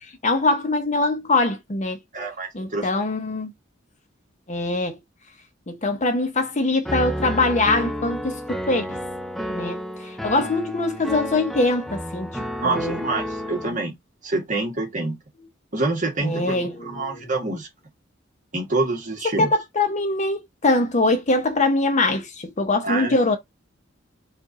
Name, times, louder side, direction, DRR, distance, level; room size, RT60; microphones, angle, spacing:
voice 1, 0.2-2.0 2.5-3.5 4.5-5.0 5.7-9.0 9.5-12.4 12.7-13.0 16.2-17.3 19.4-23.4, left 2 dB, 40° left, 0.8 m, -23 dB
voice 2, 2.1-2.9 10.4-10.5 12.6-13.9 14.2-15.2 15.7-17.7 18.5-19.5 22.8-23.1, right 2 dB, 40° right, 1.7 m, -26 dB
Piano, 6.8-13.7, equal, ahead, 0.4 m, -31 dB
4.6 x 2.6 x 4.1 m
head